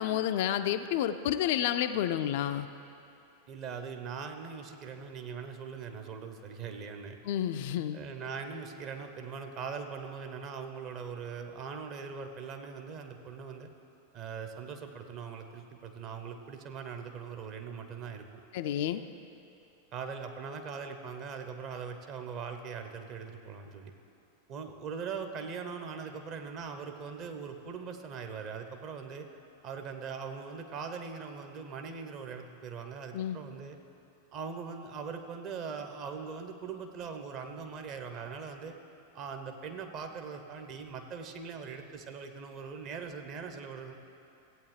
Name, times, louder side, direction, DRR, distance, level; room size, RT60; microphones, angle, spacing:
voice 1, 0.0-2.7 7.3-8.0 18.5-19.0 33.1-33.4, left 11 dB, 50° left, 9 dB, 0.3 m, -30 dB
voice 2, 3.5-7.2 7.9-13.7 14.1-18.3 19.9-23.9 24.5-29.3 29.6-33.8 34.3-38.7 39.1-43.9, right 6 dB, 35° right, 5 dB, 0.8 m, -41 dB
15.5 x 8.5 x 3.3 m, 2.7 s
figure-of-eight pair, 90°, 0 cm